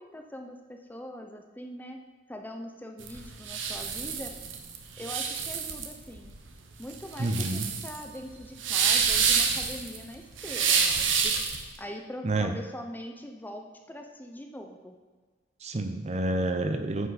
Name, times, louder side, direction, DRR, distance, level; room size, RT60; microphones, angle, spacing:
voice 1, 0.0-2.0 2.3-4.3 5.0-6.4 6.8-11.4 11.8-14.9, left 1 dB, 10° left, 4 dB, 0.7 m, -42 dB
sound 1, 3.0-11.7, right 6 dB, 90° right, 1.0 m, -28 dB
voice 2, 7.2-7.7 12.2-12.5 15.6-17.1, right 2 dB, 35° right, 7 dB, 0.7 m, -28 dB
9.7 x 7.9 x 4.1 m, 1.4 s
head